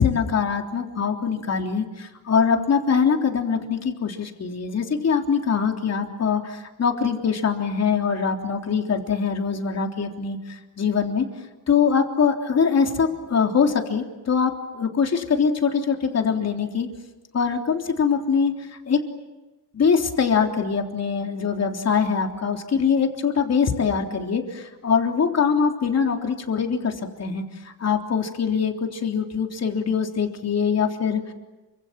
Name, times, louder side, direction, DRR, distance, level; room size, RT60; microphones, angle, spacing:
voice 1, 0.0-11.3 11.7-16.9 17.3-19.0 19.7-31.3, left 6 dB, 35° left, 3 dB, 3.6 m, -23 dB
29.0 x 25.5 x 7.6 m, 1.1 s
cardioid pair, 145°, 43 cm